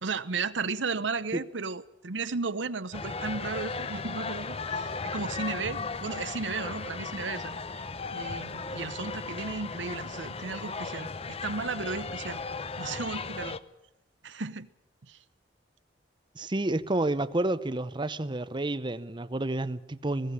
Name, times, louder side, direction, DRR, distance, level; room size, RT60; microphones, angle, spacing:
voice 1, 0.0-7.8 8.1-12.4 12.8-13.6 14.2-14.7 15.1-15.2, right 4 dB, 85° right, 0.9 m, -34 dB
sound 1, 2.9-13.6, left 4 dB, 35° left, 0.8 m, -36 dB
voice 2, 16.4-20.3, right 2 dB, 25° right, 0.7 m, -30 dB
20.0 x 17.0 x 9.8 m
head